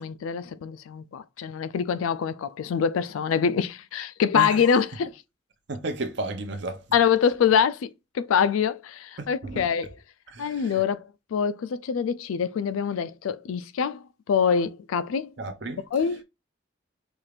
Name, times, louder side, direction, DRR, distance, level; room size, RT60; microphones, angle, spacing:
voice 1, 0.0-5.1 6.9-9.9 10.4-15.3 15.9-16.2, left 7 dB, 85° left, 0.3 m, -25 dB
voice 2, 5.7-6.9 9.2-9.6 10.3-10.8 15.4-15.8, right 2 dB, 55° right, 0.6 m, -33 dB
4.4 x 2.4 x 3.2 m
head